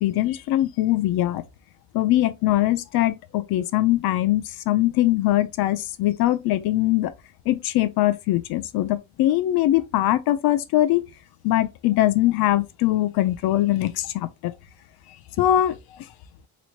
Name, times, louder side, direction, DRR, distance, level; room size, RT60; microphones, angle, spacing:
voice 1, 0.0-1.4 1.9-7.1 7.5-11.0 11.4-14.5 15.4-15.8, left 14 dB, 75° left, 0.6 m, -22 dB
3.0 x 3.0 x 2.4 m
cardioid pair, 105°, 37 cm